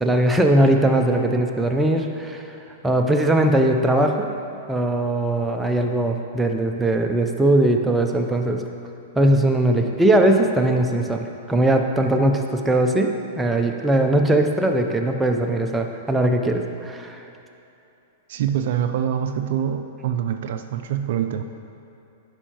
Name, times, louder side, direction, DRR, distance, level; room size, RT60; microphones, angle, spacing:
voice 1, 0.0-2.4 2.8-4.3 4.7-8.6 9.1-13.1 13.4-17.2, right 1 dB, 10° right, 3 dB, 0.5 m, -20 dB
voice 2, 18.3-21.4, right 9 dB, 60° right, 8 dB, 0.3 m, -25 dB
9.7 x 5.6 x 3.0 m, 2.8 s
hypercardioid pair, 115°, 0 cm